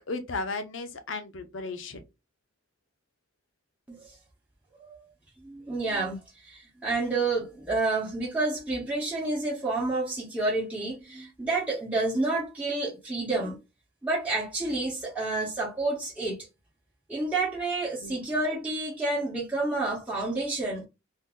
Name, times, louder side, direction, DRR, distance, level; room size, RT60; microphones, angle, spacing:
voice 1, 0.1-2.0 18.0-18.2, left 3 dB, 80° left, 0.7 m, -35 dB
voice 2, 5.4-13.6 14.0-16.4 17.1-20.8, right 2 dB, 10° right, 0.9 m, -29 dB
2.6 x 2.5 x 3.7 m
head